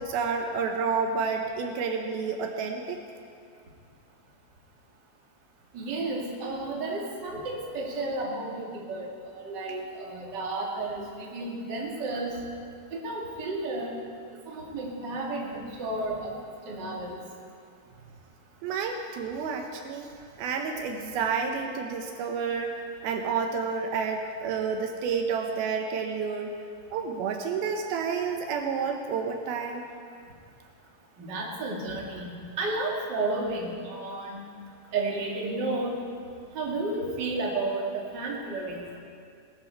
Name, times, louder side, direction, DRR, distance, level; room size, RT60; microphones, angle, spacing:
voice 1, 0.0-3.0 18.6-20.1 20.4-22.7 23.0-26.5 26.9-29.8, right 5 dB, 75° right, 3 dB, 2.7 m, -30 dB
voice 2, 5.7-12.3 12.9-13.9 14.5-16.3 16.7-17.2 31.2-34.4 34.9-35.9 36.5-39.0, right 2 dB, 35° right, -2 dB, 2.0 m, -32 dB
18.5 x 12.5 x 4.6 m, 2.3 s
omnidirectional pair, 4.5 m